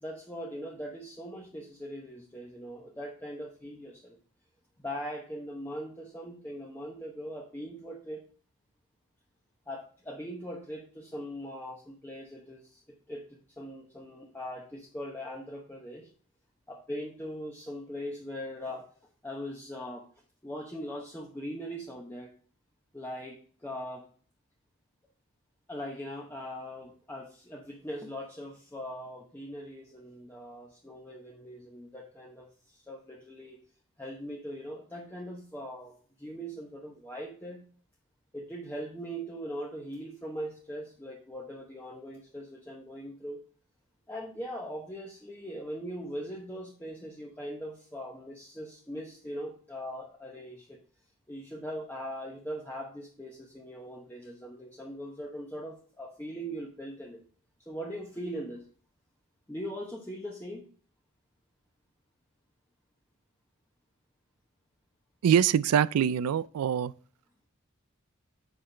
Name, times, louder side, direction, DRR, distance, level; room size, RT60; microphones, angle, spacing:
voice 1, 0.0-4.2 4.8-8.2 9.7-16.1 16.7-18.9 19.2-20.0 20.4-22.3 22.9-24.0 25.7-33.6 34.0-37.6 38.3-43.4 44.1-50.8 51.3-57.2 57.7-58.6 59.5-60.6, equal, 10° left, 0.9 m, -40 dB
voice 2, 65.2-66.9, right 8 dB, 90° right, 0.3 m, -24 dB
8.2 x 5.6 x 3.3 m
head